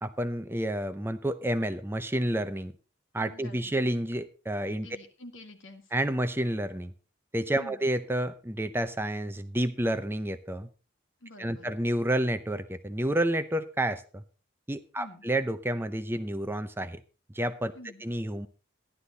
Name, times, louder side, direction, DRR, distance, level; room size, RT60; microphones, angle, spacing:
voice 1, 0.0-2.7 3.1-4.9 5.9-6.9 7.3-10.7 11.4-14.2 14.7-17.0 17.3-17.7 18.0-18.5, right 1 dB, 10° right, 11 dB, 0.6 m, -30 dB
voice 2, 3.2-3.9 4.7-5.9 7.6-7.8 11.2-11.7 15.0-15.3 17.7-18.1, left 1 dB, 75° left, 5 dB, 2.1 m, -48 dB
13.5 x 11.5 x 4.0 m, 0.35 s
head